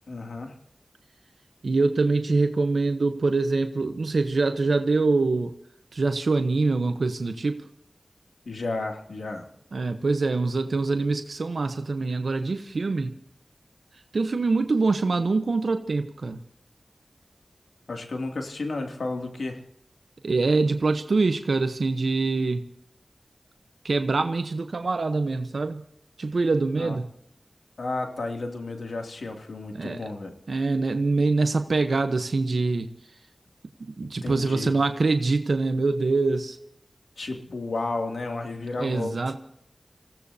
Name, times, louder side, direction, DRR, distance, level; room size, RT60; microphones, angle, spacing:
voice 1, 0.1-0.5 8.5-9.5 17.9-19.6 26.8-27.0 27.8-30.3 34.2-34.7 37.2-39.3, left 2 dB, 90° left, 3 dB, 2.6 m, -32 dB
voice 2, 1.6-5.5 5.9-7.6 9.7-13.2 14.1-16.4 20.2-22.6 23.8-25.8 26.2-27.1 29.7-30.0 30.5-32.9 33.8-36.6 38.8-39.4, right 3 dB, 85° right, 8 dB, 1.0 m, -24 dB
27.5 x 16.5 x 2.8 m, 0.71 s
cardioid pair, 40°, 0 cm